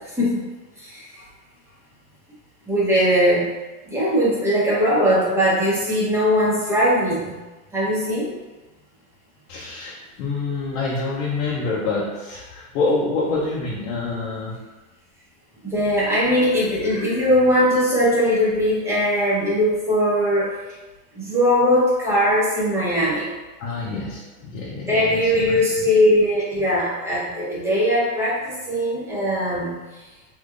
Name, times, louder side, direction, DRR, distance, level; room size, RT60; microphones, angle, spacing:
voice 1, 2.7-3.5 3.9-7.3 7.7-8.3 15.6-20.5 21.2-23.3 24.9-29.7, equal, 5° right, -9 dB, 0.9 m, -20 dB
voice 2, 9.5-14.6 16.8-17.3 23.6-25.9, left 3 dB, 60° left, -5 dB, 0.8 m, -27 dB
3.5 x 2.9 x 2.5 m, 1.1 s
supercardioid pair, 140°, 45 cm